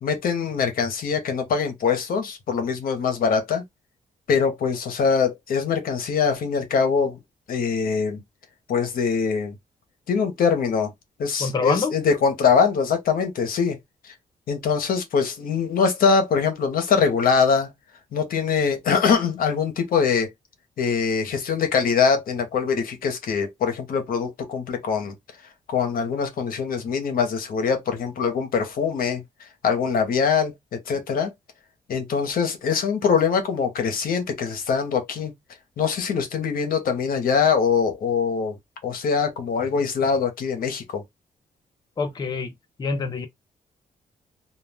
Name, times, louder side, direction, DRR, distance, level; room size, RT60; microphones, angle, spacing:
voice 1, 0.0-3.6 4.3-7.2 7.5-8.2 8.7-9.6 10.1-10.9 11.2-13.8 14.0-14.1 14.5-17.7 18.1-20.3 20.8-25.1 25.7-29.2 29.6-31.3 31.9-35.3 35.8-38.6 38.8-41.0, left 6 dB, 75° left, 0.8 m, -23 dB
voice 2, 11.4-11.9 42.0-42.5 42.8-43.3, left 4 dB, 30° left, 0.5 m, -25 dB
2.3 x 2.2 x 3.3 m
cardioid pair, 120°, 15 cm